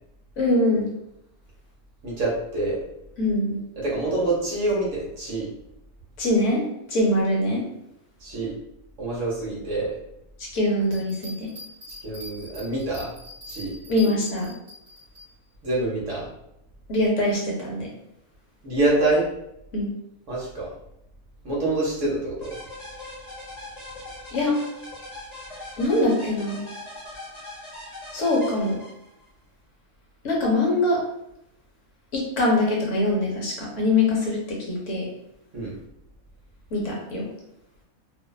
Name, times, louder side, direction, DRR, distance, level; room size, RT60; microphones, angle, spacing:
voice 1, 0.4-0.9 3.2-3.6 6.2-7.6 10.4-11.5 13.9-14.5 16.9-17.9 19.7-19.9 24.3-24.6 25.8-26.6 28.1-28.8 30.2-31.0 32.1-35.1 36.7-37.3, left 1 dB, 65° left, -2 dB, 0.9 m, -23 dB
voice 2, 2.0-2.8 3.8-5.5 8.2-8.5 9.0-10.0 12.0-13.1 13.5-13.8 15.6-16.3 18.6-19.3 20.3-20.7 21.4-22.6 35.5-35.7, right 2 dB, 65° right, -5 dB, 1.0 m, -26 dB
Bell, 10.8-15.2 15.7-15.8, left 2 dB, 40° right, 1.1 m, -42 dB
sound 1, 22.4-29.3, left 2 dB, 35° left, 0.7 m, -40 dB
2.5 x 2.2 x 2.2 m, 0.80 s
omnidirectional pair, 1.5 m